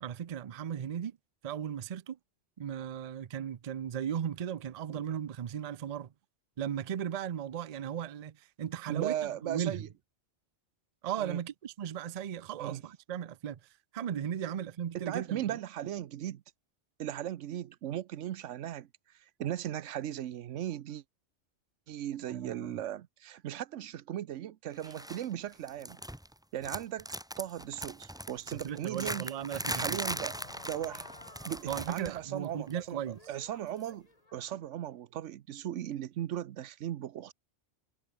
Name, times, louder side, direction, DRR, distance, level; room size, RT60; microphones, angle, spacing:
voice 1, 0.0-1.2 1.4-2.2 2.6-6.1 6.6-9.1 9.4-9.8 11.0-13.6 13.9-15.6 22.3-22.8 28.6-30.0 31.7-33.2, right 9 dB, 45° right, 0.5 m, -36 dB
voice 2, 8.9-9.9 11.2-11.4 12.6-12.8 14.9-16.4 17.0-18.9 19.4-21.0 21.9-26.0 26.5-27.1 27.4-29.3 29.7-30.4 30.6-31.1 31.5-37.3, right 11 dB, 90° right, 1.1 m, -37 dB
sound 1, 24.8-25.3 25.5-26.3 26.6-32.2 32.4-32.7 33.8-33.9, equal, 5° right, 1.3 m, -39 dB
Crowd / Fireworks, 29.5-34.8, left 2 dB, 30° left, 2.9 m, -53 dB
omnidirectional pair, 1.2 m